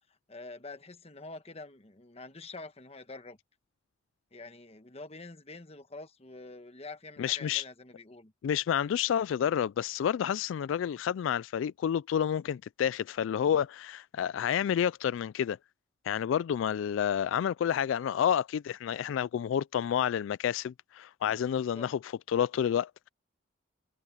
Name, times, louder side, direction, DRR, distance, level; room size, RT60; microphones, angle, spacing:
voice 1, 0.3-3.4 4.3-8.3 21.7-21.9, left 3 dB, 30° left, 1.3 m, -46 dB
voice 2, 7.2-7.6 8.4-15.6 16.0-23.1, left 9 dB, 80° left, 0.3 m, -29 dB
head